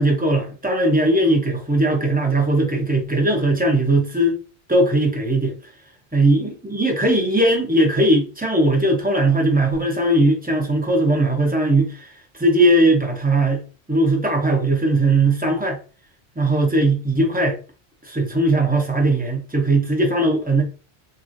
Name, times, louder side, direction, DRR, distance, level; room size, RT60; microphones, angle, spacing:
voice 1, 0.0-4.4 4.7-5.5 6.1-15.8 16.4-17.6 18.0-20.6, right 1 dB, 10° right, 0.5 m, -19 dB
2.9 x 2.6 x 2.5 m
omnidirectional pair, 1.1 m